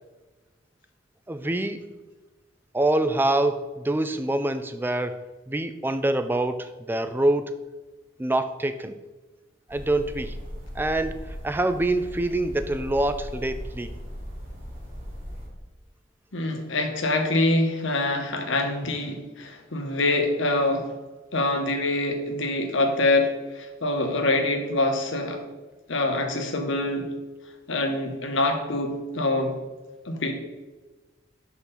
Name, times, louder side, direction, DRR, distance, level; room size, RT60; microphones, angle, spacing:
voice 1, 1.3-1.9 2.7-5.2 5.5-7.6 8.2-9.0 9.7-10.4 10.8-11.2 11.4-13.9, right 1 dB, 10° right, 10 dB, 0.3 m, -25 dB
sound 1, 9.7-15.5, equal, 45° right, 2.4 m, -38 dB
voice 2, 16.3-20.9 21.3-25.4 25.9-27.1 27.7-29.6 30.1-30.3, left 2 dB, 70° left, 4 dB, 1.0 m, -25 dB
5.8 x 4.0 x 5.8 m, 1.2 s
head